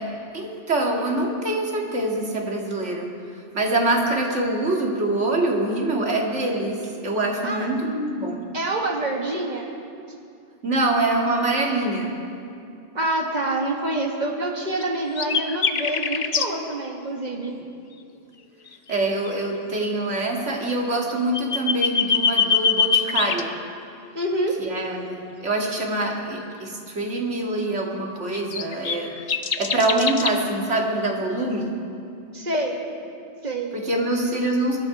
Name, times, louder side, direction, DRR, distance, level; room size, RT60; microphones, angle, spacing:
voice 1, 0.0-3.1 3.5-6.8 7.0-8.4 10.6-12.2 18.9-23.5 24.6-25.2 25.4-29.1 29.6-31.7 33.7-34.8, right 2 dB, 85° right, 0 dB, 2.3 m, -24 dB
voice 2, 8.5-9.7 12.9-17.5 24.1-24.6 32.3-32.8 33.4-33.7, right 2 dB, 40° right, 0 dB, 1.8 m, -26 dB
sound 1, 14.8-14.9 15.2-16.5 18.7-18.9 19.3-19.4 21.1-23.4 28.3-30.3, left 6 dB, 45° left, 0.6 m, -23 dB
22.5 x 11.5 x 4.8 m, 2.5 s
omnidirectional pair, 1.2 m